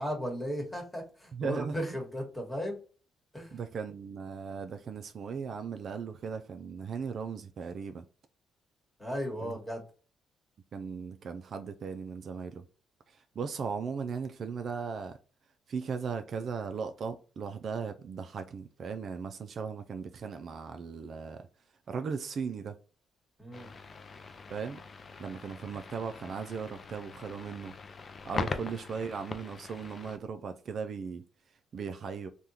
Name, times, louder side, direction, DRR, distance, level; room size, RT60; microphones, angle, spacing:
voice 1, 0.0-2.8 3.3-3.6 9.0-9.8 23.4-23.7, equal, 10° left, 1.4 m, -36 dB
voice 2, 1.3-2.0 3.5-8.0 9.4-9.6 10.7-12.7 13.1-15.2 15.7-21.5 21.9-22.8 24.5-24.8 25.2-27.8 28.2-31.3 31.7-32.3, right 6 dB, 55° right, 0.3 m, -37 dB
sound 1, 23.5-30.2, left 4 dB, 40° left, 0.4 m, -41 dB
3.5 x 2.3 x 2.8 m
cardioid pair, 90°, 0 cm